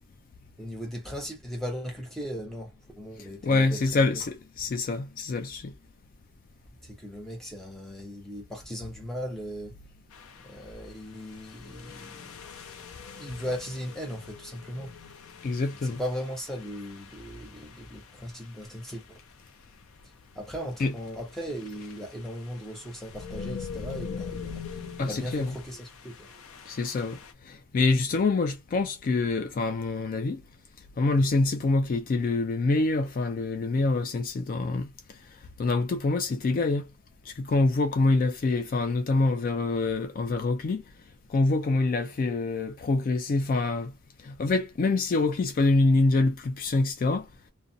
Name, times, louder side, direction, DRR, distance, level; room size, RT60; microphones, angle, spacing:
voice 1, 0.6-4.2 6.8-9.7 10.4-12.3 13.2-14.9 15.8-19.2 20.3-26.3, equal, ahead, 0.8 m, -38 dB
voice 2, 3.4-5.7 15.4-16.0 20.8-20.9 25.0-25.5 26.7-27.2 27.4-30.4 31.0-34.9 35.6-36.9 37.3-40.8 41.3-43.9 44.2-47.3, left 3 dB, 40° left, 0.3 m, -25 dB
sound 1, 10.1-19.2 20.2-20.4 20.7-27.3, left 5 dB, 85° left, 0.6 m, -43 dB
2.4 x 2.2 x 2.6 m
head